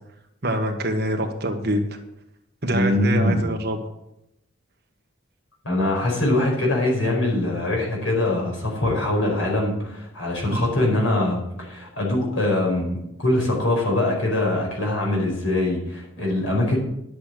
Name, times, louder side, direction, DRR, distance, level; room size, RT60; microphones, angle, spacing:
voice 1, 0.4-1.8 2.6-3.8 10.5-10.6, right 1 dB, 50° right, 3 dB, 1.5 m, -25 dB
voice 2, 2.7-3.4 5.6-16.8, left 1 dB, 80° left, -2 dB, 5.0 m, -23 dB
11.0 x 6.7 x 7.6 m, 0.83 s
head